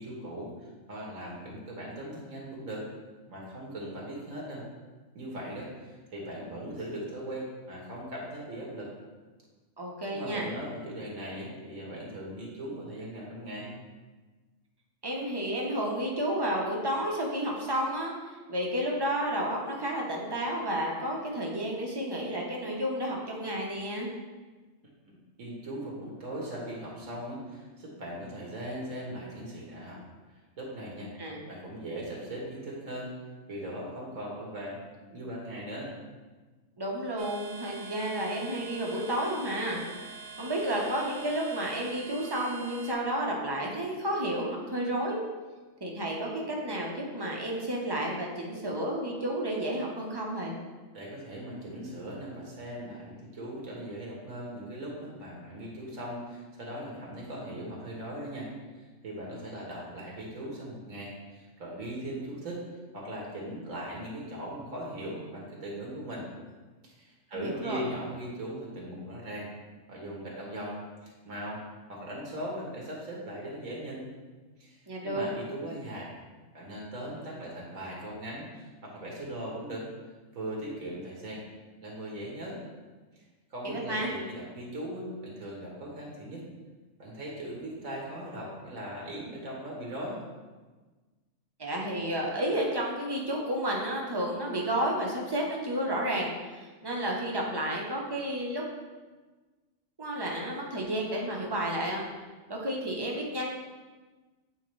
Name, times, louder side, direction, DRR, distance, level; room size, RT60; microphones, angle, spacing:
voice 1, 0.0-2.9 3.3-4.6 5.1-8.9 10.1-13.7 25.4-30.0 30.6-31.1 31.5-33.1 33.5-34.8 35.1-35.9 50.9-58.5 59.0-62.6 62.9-66.3 67.0-69.5 69.9-71.6 71.9-74.0 74.6-74.8 75.0-76.1 76.5-79.9 80.3-81.4 81.8-82.6 83.2-83.3 83.5-86.5 87.0-90.2, right 1 dB, 85° right, -3 dB, 1.8 m, -39 dB
voice 2, 9.8-10.5 15.0-24.1 31.2-31.4 36.8-39.8 40.4-45.2 45.8-50.5 67.3-67.9 74.9-75.3 83.6-84.1 91.6-98.6 100.0-102.0 102.5-103.5, right 1 dB, 20° right, -2 dB, 0.8 m, -31 dB
sound 1, 37.2-42.9, right 4 dB, 70° right, 0.9 m, -45 dB
8.3 x 3.8 x 3.2 m, 1.3 s
omnidirectional pair, 1.4 m